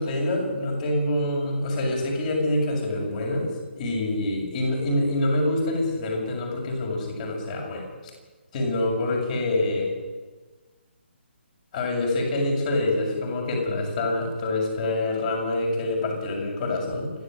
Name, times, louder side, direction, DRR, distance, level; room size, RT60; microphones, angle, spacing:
voice 1, 0.0-3.5 3.8-7.9 8.5-9.9 11.7-17.1, left 1 dB, 35° left, 0 dB, 7.1 m, -26 dB
28.5 x 12.0 x 8.0 m, 1.3 s
figure-of-eight pair, 140°, 7 cm